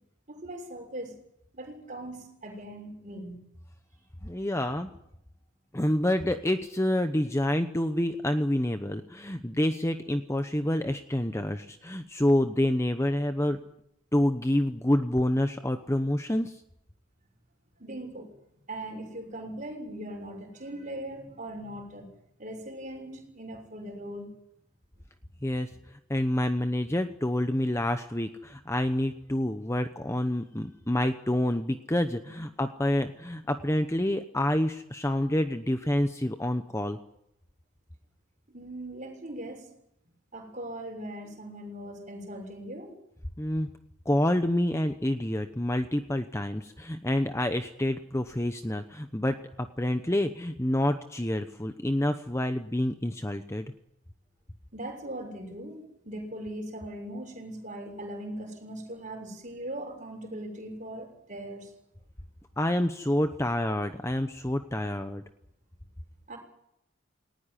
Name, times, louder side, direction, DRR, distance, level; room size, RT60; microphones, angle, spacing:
voice 1, 0.3-1.2 1.5-3.4 17.8-18.3 18.7-22.1 22.4-24.3 32.3-32.4 38.5-39.7 40.3-42.9 54.7-61.7 66.3-66.4, right 1 dB, 35° right, 2 dB, 6.4 m, -40 dB
voice 2, 4.2-4.9 5.7-13.6 14.1-16.5 25.4-25.7 26.1-37.0 43.4-43.7 44.1-53.6 62.6-65.2, left 1 dB, 15° left, 8 dB, 0.9 m, -28 dB
19.0 x 18.5 x 9.9 m, 0.79 s
head